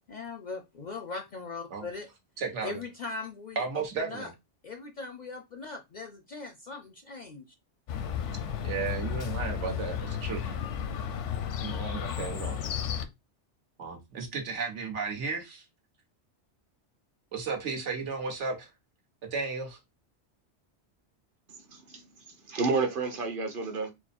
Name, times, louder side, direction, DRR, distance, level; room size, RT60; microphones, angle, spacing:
voice 1, 0.1-2.1 2.6-4.3 4.6-7.4, left 4 dB, 55° left, 0.5 m, -40 dB
voice 2, 2.4-2.8 3.6-4.3 8.6-10.6 11.6-12.6 13.8-15.6 17.3-18.7 19.3-19.8, right 4 dB, 80° right, 1.4 m, -34 dB
Chirp tweet, 7.9-13.1, left 8 dB, 85° left, 1.0 m, -33 dB
voice 3, 21.5-23.9, right 4 dB, 50° right, 1.0 m, -31 dB
4.5 x 2.1 x 4.2 m
omnidirectional pair, 1.2 m